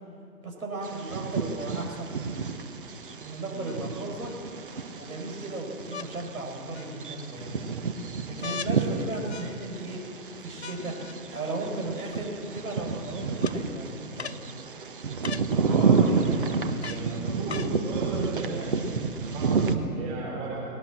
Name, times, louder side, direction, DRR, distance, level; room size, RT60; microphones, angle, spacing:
voice 1, 0.4-2.5 3.2-4.4 4.9-7.8 8.3-10.0 10.4-11.0 11.3-14.3, right 2 dB, 60° right, 0 dB, 5.5 m, -36 dB
Bird vocalization bird call bird song, 0.8-19.7, right 5 dB, 35° right, 1.2 m, -30 dB
sound 1, 1.9-2.0 3.7-4.4 5.9-6.1 6.7-7.3 8.4-8.8 9.3-9.9 10.6-11.2 12.1-12.2 13.4-13.6 14.2-14.4 15.2-15.5 16.8-17.1 17.5-17.8 18.6-18.7, left 6 dB, 45° left, 0.6 m, -39 dB
voice 2, 15.5-16.4 16.7-20.6, right 3 dB, 15° right, -5 dB, 4.8 m, -35 dB
20.0 x 17.5 x 7.5 m, 2.3 s
figure-of-eight pair, 145°, 47 cm